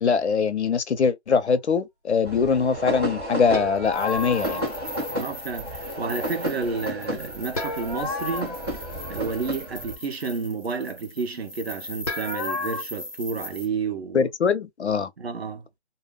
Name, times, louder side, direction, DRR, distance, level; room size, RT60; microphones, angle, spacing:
voice 1, 0.0-4.6 14.1-15.1, left 6 dB, 75° left, 0.7 m, -22 dB
sound 1, 2.2-9.9, equal, 20° right, 1.2 m, -32 dB
sound 2, 3.5-4.9 7.6-9.5 12.1-12.8, left 3 dB, 35° left, 0.9 m, -32 dB
sound 3, 3.8-13.7, equal, ahead, 0.8 m, -40 dB
voice 2, 5.1-8.6 9.1-14.3 15.2-15.6, right 4 dB, 65° right, 0.8 m, -31 dB
2.3 x 2.1 x 3.3 m
figure-of-eight pair, 165°, 34 cm